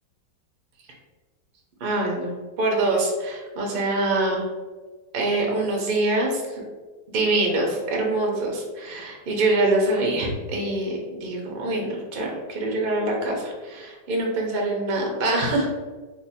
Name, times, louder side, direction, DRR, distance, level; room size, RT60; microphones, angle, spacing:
voice 1, 1.8-4.5 5.1-6.6 7.1-15.7, right 2 dB, 55° right, -1 dB, 0.6 m, -24 dB
2.7 x 2.7 x 4.1 m, 1.3 s
omnidirectional pair, 1.9 m